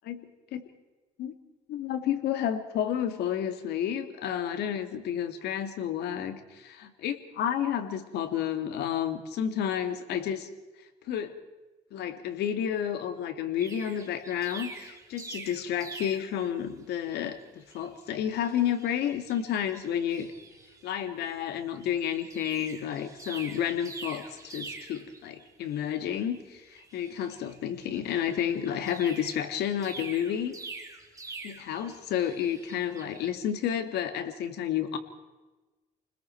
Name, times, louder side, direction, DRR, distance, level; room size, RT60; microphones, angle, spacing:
voice 1, 1.7-10.5 11.1-11.3 11.9-20.3 20.8-30.5 31.4-35.0, left 9 dB, 75° left, 8 dB, 2.2 m, -31 dB
sound 1, 13.6-16.6 17.1-17.3 17.6-20.9 21.2-21.4 21.8-33.3, right 3 dB, 20° right, 3.5 m, -46 dB
29.5 x 20.5 x 4.6 m, 1.2 s
cardioid pair, 110°, 17 cm